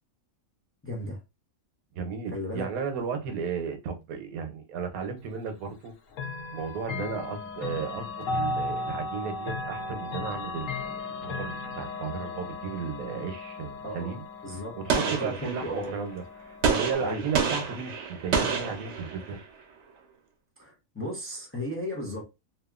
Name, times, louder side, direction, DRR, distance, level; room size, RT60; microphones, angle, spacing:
voice 1, 0.8-1.2 2.3-2.7 13.8-14.2 14.4-14.8 15.0-15.9 17.0-17.2 20.6-22.2, left 1 dB, 20° left, 0.3 m, -35 dB
voice 2, 1.9-5.9 6.5-14.2 14.5-19.4, right 6 dB, 80° right, 1.1 m, -34 dB
Chime / Clock, 6.1-17.0, left 3 dB, 70° left, 1.0 m, -36 dB
Gunshot gunfire, 14.9-15.9 16.6-19.4, right 5 dB, 65° right, 0.8 m, -29 dB
2.8 x 2.3 x 2.3 m
omnidirectional pair, 1.5 m